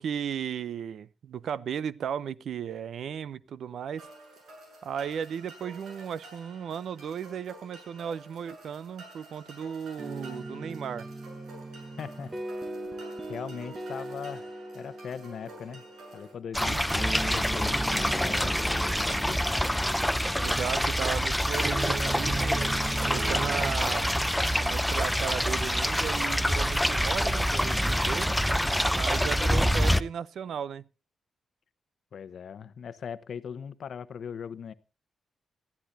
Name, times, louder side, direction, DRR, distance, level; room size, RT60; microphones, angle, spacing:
voice 1, 0.0-4.1 4.8-11.1 16.6-16.8 20.4-22.7 23.0-24.1 24.6-28.4 28.9-30.8, right 8 dB, 70° right, 0.6 m, -35 dB
sound 1, 4.0-16.3, right 2 dB, 85° right, 7.7 m, -50 dB
sound 2, 10.0-23.7, right 2 dB, 20° right, 1.2 m, -39 dB
voice 2, 12.0-12.3 13.3-14.5 14.7-15.8 16.1-19.4 32.1-34.7, left 7 dB, 60° left, 0.9 m, -39 dB
sound 3, 16.5-30.0, equal, ahead, 0.6 m, -26 dB
19.5 x 13.5 x 2.7 m
wide cardioid pair, 135°, 0 cm